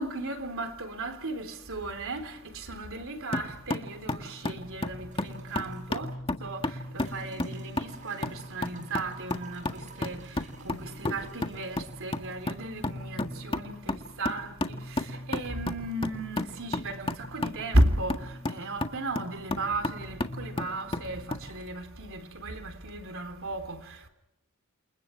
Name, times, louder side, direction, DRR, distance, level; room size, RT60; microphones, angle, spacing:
voice 1, 0.0-6.2 6.4-24.1, right 1 dB, 65° right, 3.8 m, -34 dB
sound 1, 3.3-21.5, left 2 dB, 25° left, 1.8 m, -34 dB
sound 2, 5.1-5.9 7.0-14.0 15.3-15.4, right 3 dB, 35° right, 7.4 m, -53 dB
28.5 x 28.5 x 4.6 m
head